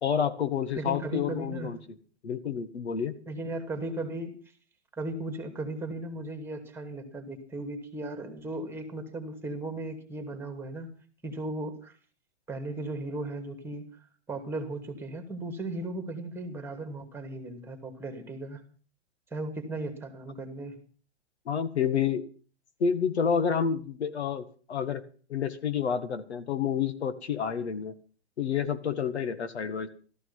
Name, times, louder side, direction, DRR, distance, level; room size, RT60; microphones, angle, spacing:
voice 1, 0.0-1.8 2.2-3.2 21.5-22.2 22.8-25.0 25.3-28.0 28.4-29.9, left 7 dB, 75° left, 10 dB, 1.9 m, -29 dB
voice 2, 0.8-1.7 3.3-4.4 4.9-10.9 11.2-12.0 12.5-14.0 14.3-18.6 19.3-20.8, right 2 dB, 5° right, 7 dB, 2.5 m, -36 dB
14.5 x 14.0 x 5.7 m, 0.40 s
hypercardioid pair, 140°, 33 cm